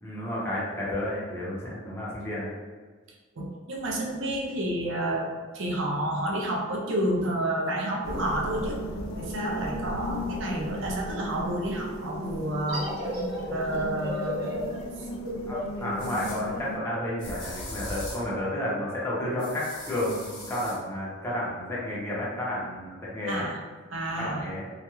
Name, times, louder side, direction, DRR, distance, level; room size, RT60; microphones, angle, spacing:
voice 1, 0.0-2.5 15.5-23.5 24.2-24.7, left 1 dB, 15° left, -7 dB, 0.6 m, -31 dB
voice 2, 3.4-8.8 9.1-12.9 13.5-14.6 23.3-23.6 23.9-24.5, right 1 dB, 70° right, -1 dB, 0.5 m, -30 dB
sound 1, 8.0-16.8, left 1 dB, 85° left, 0.4 m, -36 dB
sound 2, 12.7-18.0, equal, 55° right, 1.0 m, -35 dB
sound 3, 14.8-14.9 16.0-16.4 17.2-18.3 19.4-20.8, left 1 dB, 65° left, 0.9 m, -39 dB
2.3 x 2.2 x 2.9 m, 1.4 s
head